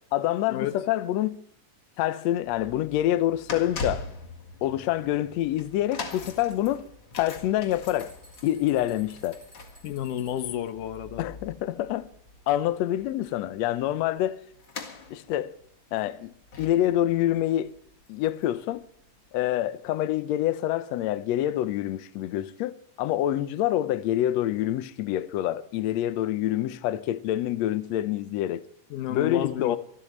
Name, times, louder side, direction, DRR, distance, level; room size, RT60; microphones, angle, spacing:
voice 1, 0.1-1.4 2.0-4.1 4.6-6.8 7.2-8.1 8.4-9.4 11.2-12.1 12.5-14.4 15.1-15.6 15.9-17.7 18.1-18.8 19.3-28.6 29.1-29.8, left 13 dB, 85° left, 1.5 m, -26 dB
sound 1, 3.1-18.8 19.0-19.3 20.1-20.2, left 3 dB, 40° left, 2.1 m, -42 dB
sound 2, 7.6-10.7, equal, 15° right, 3.8 m, -55 dB
voice 2, 9.8-11.3 28.9-29.8, left 11 dB, 70° left, 2.4 m, -31 dB
25.0 x 12.5 x 3.2 m
omnidirectional pair, 4.1 m